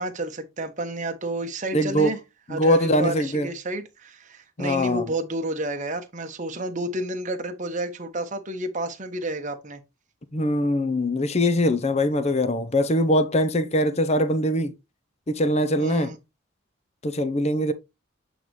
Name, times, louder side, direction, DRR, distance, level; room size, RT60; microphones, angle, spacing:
voice 1, 0.0-2.2 2.5-9.8 15.8-16.2, right 2 dB, 35° right, 1.0 m, -30 dB
voice 2, 1.7-2.1 2.5-3.5 4.6-5.0 10.3-14.7 15.3-16.1 17.0-17.7, left 1 dB, 30° left, 0.7 m, -22 dB
8.3 x 4.0 x 3.1 m
head